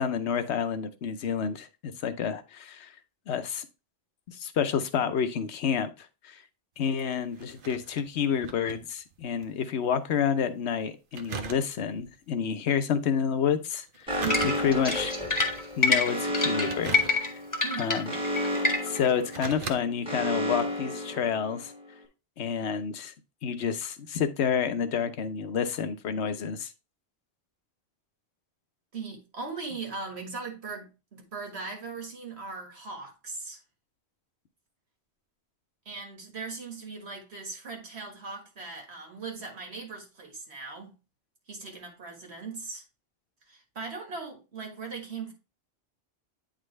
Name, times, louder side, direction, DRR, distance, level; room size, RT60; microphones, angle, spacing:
voice 1, 0.0-2.9 3.3-3.7 4.3-6.4 6.8-14.2 14.6-15.1 15.8-16.9 17.2-17.3 17.8-18.1 18.9-21.7 22.4-23.1 23.4-26.7, left 7 dB, 90° left, 1.0 m, -29 dB
sound 1, 6.8-9.6 9.9-10.0 11.1-12.1 13.9-15.0 15.5-15.9 16.6-17.6 18.4-18.5 19.0-19.8 20.3-20.4, right 5 dB, 60° right, 0.9 m, -40 dB
Alarm, 14.1-21.8, left 1 dB, 5° right, 1.3 m, -32 dB
voice 2, 14.2-14.7 17.6-17.9 28.9-33.6 35.9-40.9 41.5-42.8 43.5-45.3, right 4 dB, 80° right, 1.9 m, -39 dB
sound 2, 14.3-19.1, left 3 dB, 20° left, 1.1 m, -26 dB
8.9 x 3.8 x 3.2 m
omnidirectional pair, 1.1 m